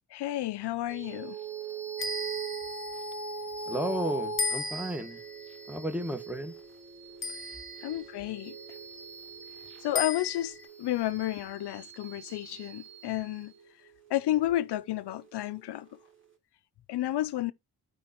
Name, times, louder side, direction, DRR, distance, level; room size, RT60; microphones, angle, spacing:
voice 1, 0.1-1.4 7.8-8.6 9.8-13.5 14.1-15.9 16.9-17.5, left 14 dB, 80° left, 0.5 m, -31 dB
sound 1, 0.9-15.6, right 4 dB, 30° right, 3.3 m, -41 dB
sound 2, 2.0-2.9 4.4-5.2 7.2-7.9 10.0-10.6, left 3 dB, 30° left, 1.4 m, -34 dB
voice 2, 3.7-5.2 5.7-6.5, equal, 5° right, 1.6 m, -33 dB
12.5 x 4.9 x 2.9 m
cardioid pair, 50°, 40 cm